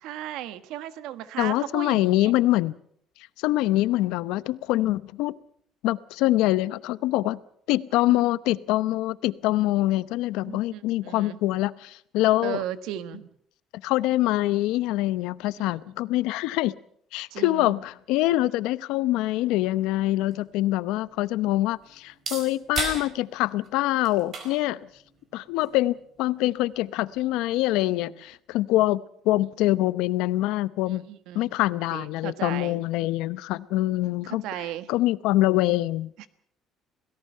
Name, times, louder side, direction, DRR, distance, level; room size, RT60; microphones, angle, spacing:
voice 1, 0.0-2.3 8.1-8.3 10.5-11.4 12.4-13.3 15.6-15.7 17.3-17.7 27.9-28.0 30.9-31.5 31.9-32.8 34.2-34.9 36.2-36.3, right 12 dB, 70° right, 1.4 m, -36 dB
voice 2, 1.4-2.7 3.4-5.3 5.8-7.4 7.7-12.6 13.8-16.7 17.1-24.9 25.3-31.1 31.3-34.4 34.9-36.1, left 16 dB, 85° left, 0.8 m, -24 dB
sound 1, 19.7-27.7, right 4 dB, 30° right, 4.5 m, -40 dB
28.0 x 18.0 x 5.6 m
cardioid pair, 180°, 0 cm